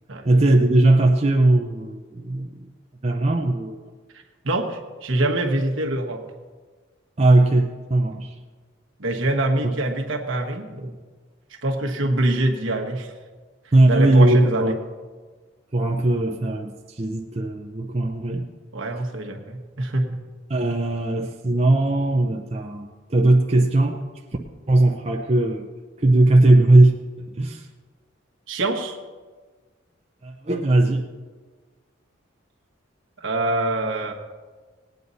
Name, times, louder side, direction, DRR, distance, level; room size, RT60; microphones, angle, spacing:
voice 1, 0.2-2.7 3.0-3.8 7.2-8.3 13.7-14.8 15.7-18.5 20.5-24.0 24.7-25.7 26.0-27.0 27.3-27.7 30.2-31.1, right 2 dB, 30° right, 2 dB, 0.6 m, -19 dB
voice 2, 4.4-6.2 8.1-8.2 9.0-10.9 11.6-13.1 13.9-14.8 18.7-20.2 28.5-29.0 33.2-34.1, right 1 dB, 75° right, 2 dB, 1.3 m, -24 dB
18.0 x 9.5 x 4.1 m, 1.4 s
head